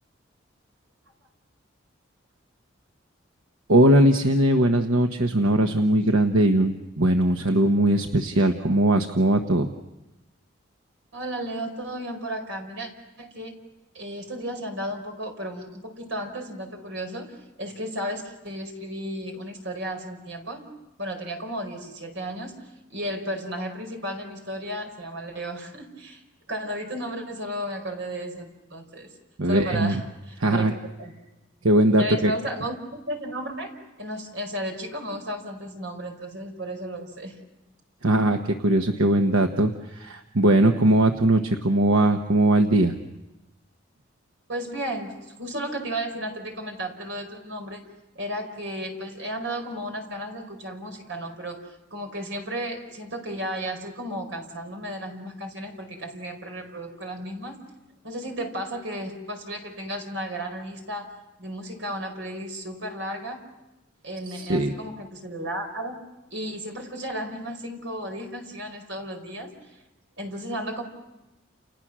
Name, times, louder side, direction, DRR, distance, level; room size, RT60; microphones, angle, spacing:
voice 1, 3.7-9.7 29.4-30.0 30.4-30.7 31.6-32.3 38.0-43.0 64.3-64.7, right 1 dB, 90° right, 5 dB, 1.2 m, -20 dB
voice 2, 11.1-12.9 13.2-13.5 13.9-20.6 21.0-22.5 22.9-26.2 26.5-29.1 29.5-30.7 31.0-31.1 32.0-33.7 34.0-37.4 44.5-47.8 48.1-51.6 51.9-57.6 58.0-61.1 61.4-63.4 64.0-66.0 66.3-69.5 70.2-70.8, equal, 70° right, 3 dB, 4.8 m, -34 dB
30.0 x 29.5 x 6.2 m, 1.0 s
head